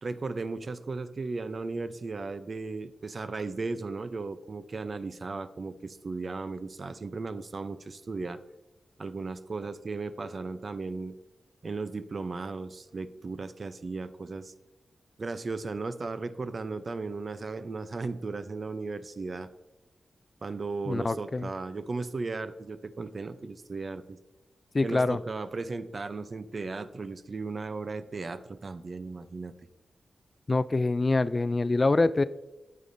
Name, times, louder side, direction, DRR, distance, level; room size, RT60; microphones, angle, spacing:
voice 1, 0.0-8.4 9.0-11.2 11.6-14.5 15.2-19.5 20.4-24.2 24.8-29.5, right 3 dB, 55° right, 12 dB, 0.5 m, -36 dB
voice 2, 20.9-21.5 24.7-25.2 30.5-32.2, left 3 dB, 35° left, 15 dB, 0.3 m, -25 dB
8.9 x 8.4 x 2.6 m, 1.1 s
cardioid pair, 60°, 0 cm